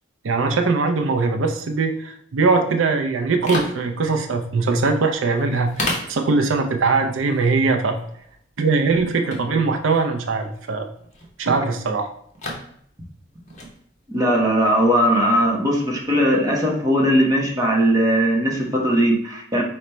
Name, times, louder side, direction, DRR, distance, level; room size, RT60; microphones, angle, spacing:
voice 1, 0.2-8.0 8.6-10.8 11.4-12.1, right 4 dB, 80° right, 5 dB, 0.5 m, -21 dB
sound 1, 3.2-17.4, left 1 dB, 35° left, 0.9 m, -37 dB
voice 2, 14.1-19.6, equal, 20° right, -2 dB, 0.8 m, -19 dB
5.0 x 2.1 x 4.2 m, 0.66 s
head